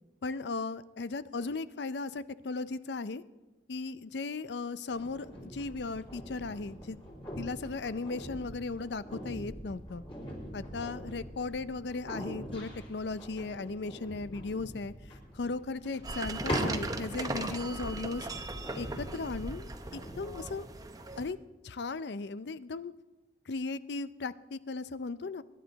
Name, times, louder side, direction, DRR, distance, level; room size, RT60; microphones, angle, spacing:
voice 1, 0.2-3.2 3.7-7.0 7.4-10.0 10.5-18.3 18.8-20.7 21.2-21.4 21.6-22.9 23.5-25.4, left 3 dB, 70° left, 15 dB, 0.5 m, -37 dB
sound 1, 4.9-20.8, equal, 30° left, 4.2 m, -42 dB
sound 2, 16.0-21.3, right 2 dB, 20° right, 0.8 m, -38 dB
23.5 x 11.0 x 4.1 m, 1.1 s
head